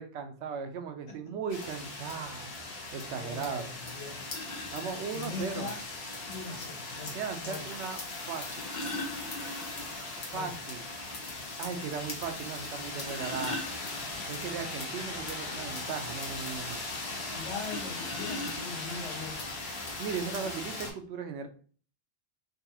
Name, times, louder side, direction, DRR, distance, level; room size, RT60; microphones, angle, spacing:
voice 1, 0.0-2.5 2.9-3.6 4.7-5.7 7.1-8.0 8.3-8.5 10.3-10.8 11.6-13.6 14.3-16.8 20.0-21.5, right 6 dB, 90° right, 7 dB, 0.9 m, -37 dB
sound 1, 1.5-20.9, left 2 dB, 70° left, 1.1 m, -39 dB
voice 2, 3.2-4.3 5.1-5.8 6.3-7.7 10.3-10.5 17.3-19.5 20.2-20.3, left 5 dB, 90° left, 0 dB, 1.3 m, -41 dB
sound 2, 4.3-4.9 6.3-6.4 8.2-10.0 10.3-10.4 10.8-10.9 11.4-11.5 12.7-14.3 17.6-19.0 19.8-19.9 20.3-20.5, left 1 dB, 50° left, 0.6 m, -40 dB
3.9 x 2.3 x 2.7 m, 0.42 s
omnidirectional pair, 1.1 m